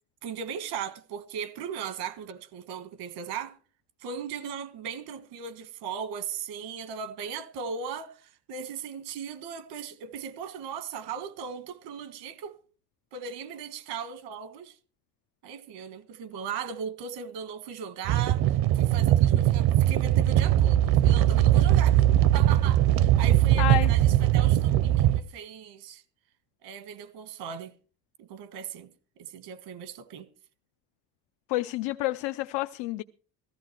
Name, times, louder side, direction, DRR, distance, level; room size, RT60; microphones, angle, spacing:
voice 1, 0.2-3.5 4.0-12.6 13.1-14.7 15.4-22.0 22.3-26.0 26.6-27.7 28.2-28.9 29.2-30.3, right 7 dB, 80° right, 1.6 m, -38 dB
sound 1, 18.0-25.2, right 13 dB, 60° right, 0.7 m, -21 dB
voice 2, 23.6-23.9 31.5-33.0, left 18 dB, 90° left, 0.7 m, -29 dB
15.5 x 14.5 x 4.5 m
cardioid pair, 175°, 41 cm